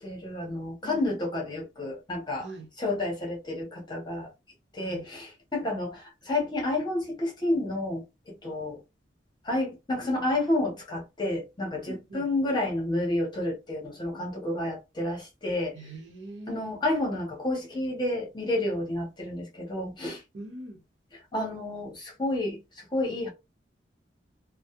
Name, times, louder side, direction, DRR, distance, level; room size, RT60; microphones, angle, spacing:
voice 1, 0.0-2.5 2.8-4.3 4.7-8.0 8.4-8.8 9.4-15.7 16.5-20.2 21.3-22.6 22.9-23.3, left 1 dB, 25° left, 0.9 m, -30 dB
voice 2, 2.4-2.7 4.8-5.1 11.9-12.3 15.7-16.8 20.3-20.8, right 1 dB, 75° right, 0.8 m, -42 dB
2.2 x 2.0 x 2.8 m
head